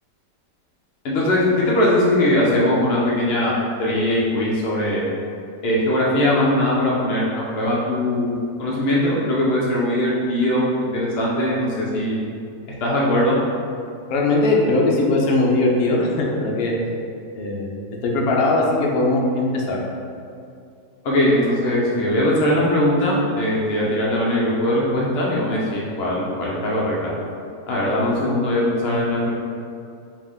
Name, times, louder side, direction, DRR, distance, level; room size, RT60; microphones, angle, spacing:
voice 1, 1.0-3.5 3.8-5.1 5.6-8.3 8.6-12.2 12.8-13.4 21.0-27.1 27.7-29.3, left 1 dB, 90° left, -5 dB, 0.5 m, -20 dB
voice 2, 14.1-16.7 17.3-19.8, left 2 dB, 65° left, -2 dB, 1.1 m, -20 dB
4.9 x 2.5 x 3.5 m, 2.4 s
omnidirectional pair, 1.8 m